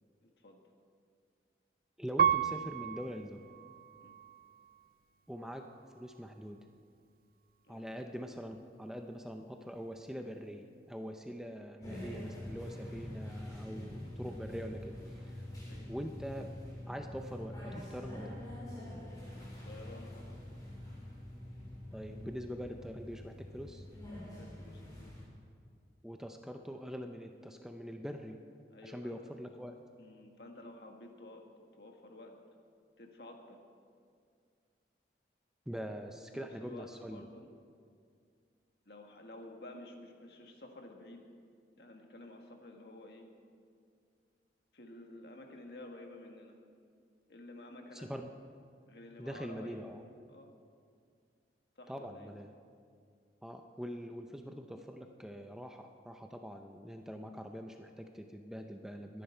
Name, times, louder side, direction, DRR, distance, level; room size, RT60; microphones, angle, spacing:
voice 1, 0.2-0.6 4.0-4.1 7.7-7.9 15.6-16.0 19.6-20.4 24.2-25.1 28.7-29.2 30.0-31.5 31.8-32.3 33.0-33.6 36.1-37.5 38.9-41.2 41.8-43.3 44.7-46.6 47.3-48.1 48.9-49.8 50.3-50.5 51.8-52.3, left 1 dB, 60° left, 2 dB, 1.7 m, -51 dB
voice 2, 2.0-3.5 5.3-6.7 7.7-15.4 15.9-16.5 16.9-18.4 21.9-23.8 26.0-28.4 28.8-29.8 35.7-37.3 47.9-48.3 49.2-50.0 51.9-52.5 53.4-59.2, equal, 5° right, 4 dB, 0.5 m, -43 dB
Piano, 2.2-4.9 5.6-6.3, right 8 dB, 55° right, 0.3 m, -34 dB
sound 1, 11.8-25.2, left 1 dB, 20° left, 3.8 m, -45 dB
22.0 x 10.0 x 4.5 m, 2.2 s
head